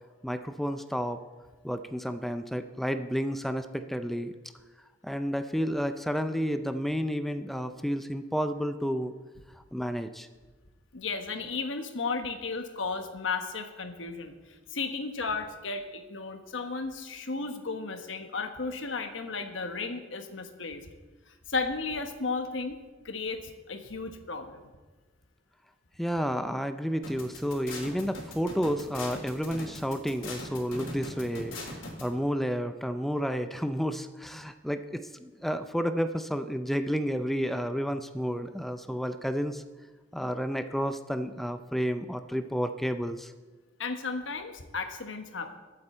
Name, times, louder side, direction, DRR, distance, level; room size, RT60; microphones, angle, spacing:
voice 1, 0.2-1.2 1.6-4.3 5.0-9.1 9.7-10.3 26.0-39.6 40.1-43.3, equal, ahead, 9 dB, 0.4 m, -31 dB
voice 2, 10.9-20.8 21.3-22.8 23.0-24.7 43.8-45.6, left 4 dB, 75° left, 7 dB, 1.2 m, -34 dB
sound 1, 27.0-32.0, left 2 dB, 90° left, 3.2 m, -39 dB
21.0 x 8.1 x 4.4 m, 1.3 s
head